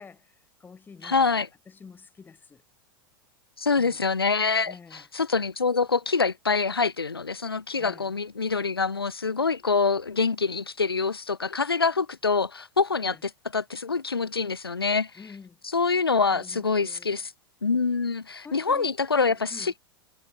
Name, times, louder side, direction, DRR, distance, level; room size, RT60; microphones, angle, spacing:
voice 1, 0.0-1.4 1.7-2.6 3.7-4.0 4.6-5.0 7.8-8.1 13.0-13.2 15.2-15.6 16.3-17.2 18.4-18.9 19.2-19.7, left 5 dB, 15° left, 3.2 m, -48 dB
voice 2, 1.0-1.5 3.6-15.1 15.7-17.3 17.6-19.8, left 4 dB, 80° left, 0.8 m, -25 dB
figure-of-eight pair, 90°, 12 cm